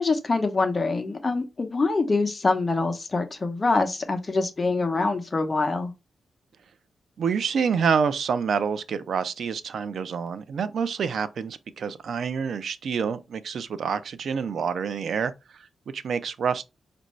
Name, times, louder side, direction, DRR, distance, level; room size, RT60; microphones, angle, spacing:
voice 1, 0.0-5.9, left 3 dB, 30° left, 0.8 m, -25 dB
voice 2, 7.2-15.3 15.9-16.6, right 6 dB, 70° right, 0.4 m, -27 dB
5.3 x 2.6 x 3.1 m
cardioid pair, 110°, 0 cm